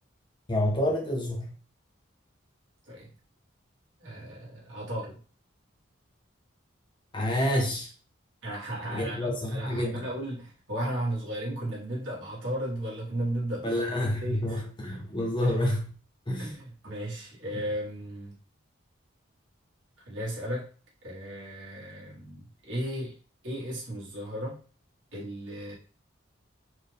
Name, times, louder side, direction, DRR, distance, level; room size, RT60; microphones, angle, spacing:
voice 1, 0.5-1.6 7.1-7.9 8.9-10.1 13.6-15.9 16.3-16.5 17.5-17.6, left 1 dB, 25° left, 0 dB, 0.8 m, -28 dB
voice 2, 4.0-5.2 8.4-13.8 14.2-14.6 15.4-15.7 16.4-18.4 20.1-20.6 21.0-23.1 23.4-24.6 25.1-25.7, right 1 dB, 70° right, -6 dB, 1.7 m, -35 dB
4.4 x 2.4 x 3.4 m, 0.40 s
head